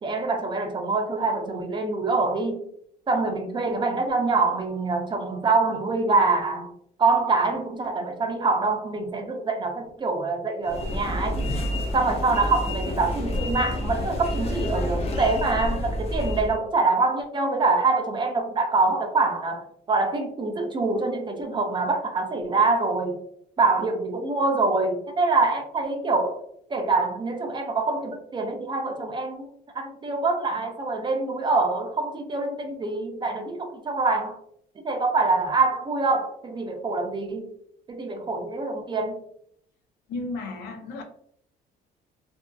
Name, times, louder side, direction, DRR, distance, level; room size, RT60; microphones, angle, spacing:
voice 1, 0.0-2.6 3.1-6.7 7.0-11.5 11.9-23.2 23.6-26.4 26.7-29.5 29.7-34.4 34.8-37.5 37.9-39.2, right 3 dB, 25° right, 0.5 m, -25 dB
sound 1, 10.6-16.6, left 1 dB, 35° left, 0.5 m, -29 dB
voice 2, 40.1-41.0, left 3 dB, 80° left, 0.6 m, -33 dB
2.6 x 2.5 x 2.3 m
cardioid pair, 110°, 17 cm